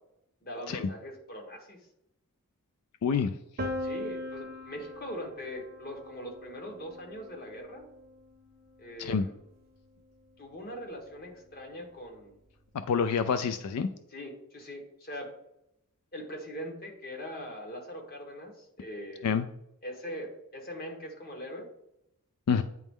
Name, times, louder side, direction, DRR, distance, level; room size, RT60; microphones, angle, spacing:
voice 1, 0.4-1.8 3.8-7.8 8.8-9.4 10.4-12.4 14.1-15.3 16.1-19.3 19.8-21.7, equal, 45° left, 2 dB, 1.3 m, -41 dB
voice 2, 3.0-3.4 9.0-9.2 12.7-13.9 19.2-19.4 22.5-22.6, left 6 dB, 90° left, 10 dB, 0.4 m, -27 dB
Piano, 3.6-9.4, left 1 dB, 40° right, 0.6 m, -41 dB
9.1 x 3.1 x 3.6 m, 0.81 s
head